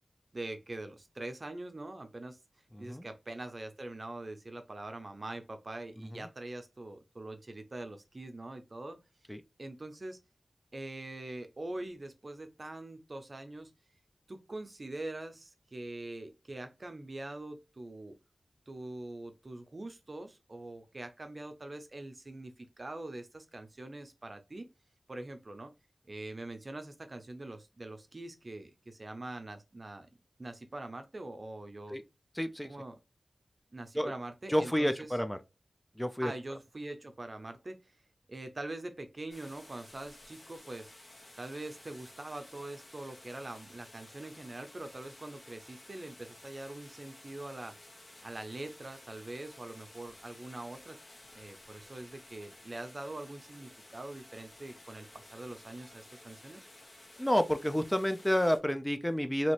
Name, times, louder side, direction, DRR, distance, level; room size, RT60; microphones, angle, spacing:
voice 1, 0.3-2.4 2.8-9.0 9.6-10.2 10.7-13.7 14.3-18.1 18.7-24.7 25.1-25.7 26.1-30.1 30.4-32.0 32.6-33.0 33.7-35.2 36.2-38.0 38.3-40.9 41.4-47.8 48.2-51.0 51.3-56.6, right 2 dB, 50° right, 0.6 m, -43 dB
voice 2, 2.7-3.1 9.3-9.4 31.9-32.0 32.4-32.7 34.0-34.1 34.5-35.4 36.0-36.3 57.2-59.5, equal, 10° left, 0.5 m, -29 dB
sound 1, 39.3-58.6, left 1 dB, 40° left, 1.2 m, -54 dB
2.9 x 2.6 x 3.0 m
cardioid pair, 45°, 0 cm